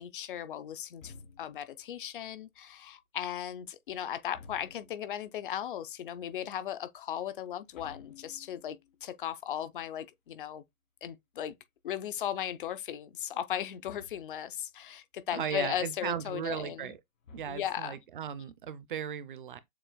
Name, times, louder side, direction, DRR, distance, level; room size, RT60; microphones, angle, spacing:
voice 1, 0.0-10.6 11.0-11.5 11.8-16.9 17.5-18.0, left 10 dB, 40° left, 0.5 m, -37 dB
sound 1, 1.0-1.8 4.3-5.1 7.7-8.9 13.8-14.5 17.2-18.1, left 4 dB, 70° left, 3.1 m, -52 dB
voice 2, 15.3-17.0 17.3-19.6, right 9 dB, 40° right, 0.4 m, -36 dB
6.9 x 2.8 x 2.2 m
hypercardioid pair, 140°, 41 cm